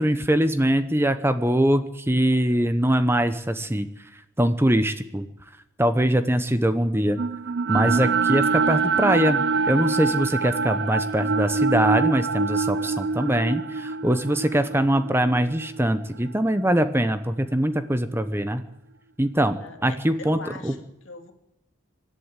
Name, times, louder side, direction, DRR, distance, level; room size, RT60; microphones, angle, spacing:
voice 1, 0.0-3.9 4.1-5.3 5.8-7.2 7.7-18.6 19.2-20.7, right 1 dB, 10° right, 10 dB, 0.8 m, -22 dB
sound 1, 7.2-17.3, right 4 dB, 55° right, 0.6 m, -25 dB
voice 2, 19.6-21.3, left 3 dB, 60° left, 5 dB, 2.8 m, -41 dB
25.0 x 11.5 x 8.9 m, 0.91 s
head